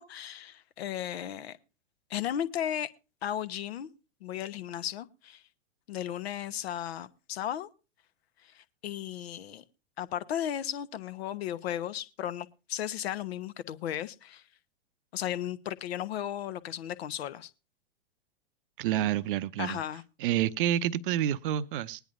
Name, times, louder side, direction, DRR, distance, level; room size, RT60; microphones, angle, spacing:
voice 1, 0.0-1.6 2.1-2.9 3.2-3.9 4.2-5.4 5.9-7.7 8.4-9.6 10.0-14.4 15.1-17.5 19.6-20.0, left 10 dB, 60° left, 1.0 m, -35 dB
voice 2, 18.8-19.8 20.2-22.0, right 11 dB, 45° right, 0.7 m, -28 dB
20.5 x 10.5 x 2.5 m
figure-of-eight pair, 105°, 36 cm